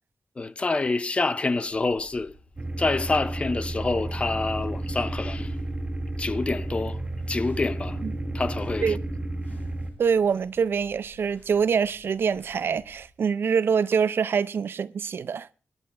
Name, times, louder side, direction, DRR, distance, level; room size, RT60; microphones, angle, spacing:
voice 1, 0.4-2.3 2.8-5.6 6.2-7.0 7.3-8.0 8.3-9.0, left 3 dB, 30° left, 0.6 m, -27 dB
sound 1, 1.6-13.1, equal, 50° left, 5.0 m, -53 dB
sound 2, 2.6-9.9, right 2 dB, 25° right, 2.6 m, -32 dB
voice 2, 10.0-15.5, right 6 dB, 75° right, 0.5 m, -25 dB
20.5 x 11.0 x 3.3 m
wide cardioid pair, 130°, 4 cm